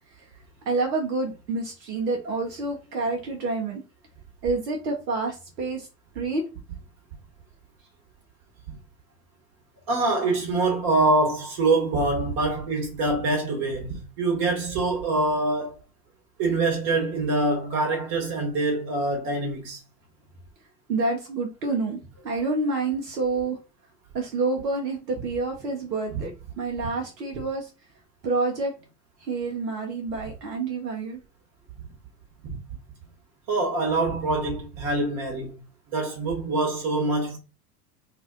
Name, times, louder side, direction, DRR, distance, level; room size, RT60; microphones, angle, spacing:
voice 1, 0.6-3.8 4.4-5.9 6.1-6.4 20.9-23.6 24.1-27.7 28.2-28.7 29.2-31.2, right 3 dB, 85° right, 0.7 m, -28 dB
voice 2, 9.9-15.7 16.4-19.8 32.4-32.6 33.5-35.5 35.9-37.4, right 2 dB, 50° right, 1.1 m, -25 dB
2.4 x 2.1 x 3.5 m
hypercardioid pair, 75°, 49 cm